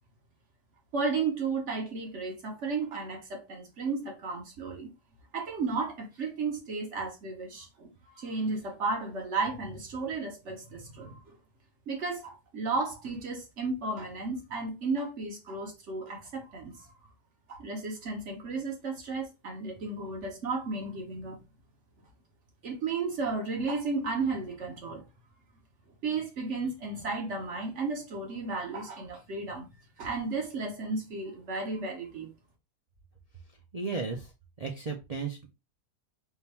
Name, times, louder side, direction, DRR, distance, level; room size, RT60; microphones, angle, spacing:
voice 1, 0.9-4.9 5.3-7.9 8.2-11.4 11.9-16.8 17.5-21.4 22.6-25.0 26.0-29.7 30.0-32.3, right 3 dB, 50° right, 1.4 m, -33 dB
voice 2, 33.7-34.3 34.6-35.5, right 4 dB, 85° right, 0.3 m, -34 dB
3.7 x 2.6 x 4.2 m
omnidirectional pair, 1.7 m